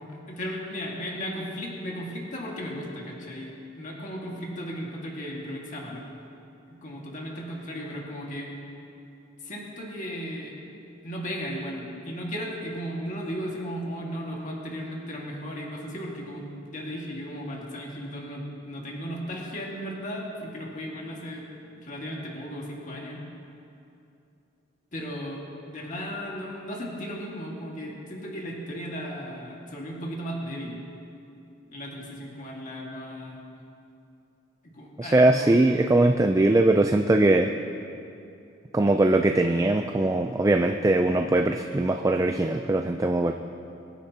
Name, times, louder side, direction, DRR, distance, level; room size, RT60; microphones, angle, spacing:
voice 1, 0.0-6.1 6.7-8.5 9.4-10.5 11.0-21.5 21.8-23.3 24.9-30.8 31.7-33.4 34.6-35.6 36.2-36.3, equal, 45° left, -2 dB, 1.8 m, -36 dB
voice 2, 35.0-37.5 38.7-43.3, right 2 dB, 15° right, 5 dB, 0.3 m, -21 dB
24.0 x 10.0 x 2.9 m, 2.7 s
head